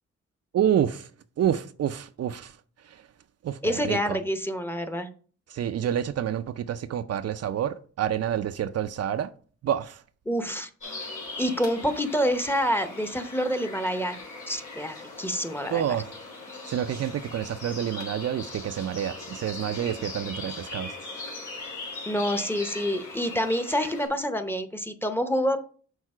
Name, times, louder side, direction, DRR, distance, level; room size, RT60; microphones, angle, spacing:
voice 1, 0.5-1.1 1.4-2.6 2.8-3.1 3.4-4.2 5.5-9.3 9.6-10.0 15.7-16.1 16.6-21.0, right 10 dB, 55° right, 0.4 m, -28 dB
voice 2, 3.6-5.1 10.3-10.7 11.4-14.2 14.5-15.8 22.1-25.6, equal, 5° left, 0.7 m, -27 dB
sound 1, 10.8-24.1, left 3 dB, 85° left, 3.5 m, -40 dB
6.5 x 4.1 x 4.8 m
cardioid pair, 90°, 29 cm